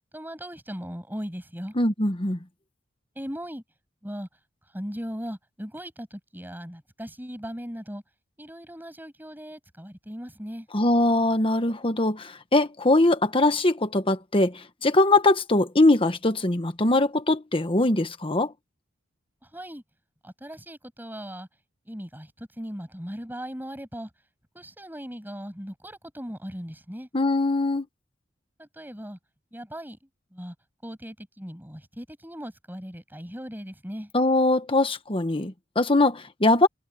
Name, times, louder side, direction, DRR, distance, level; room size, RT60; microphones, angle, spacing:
voice 1, 0.1-1.7 3.2-3.6 4.0-4.3 4.7-8.0 8.4-10.7 19.5-19.8 20.2-21.5 21.9-24.1 24.5-27.1 28.6-29.2 29.5-30.0 30.3-30.5 30.8-34.1, equal, 10° right, 7.2 m, -38 dB
voice 2, 1.7-2.4 10.7-18.5 27.1-27.9 34.1-36.7, left 2 dB, 30° left, 1.4 m, -22 dB
head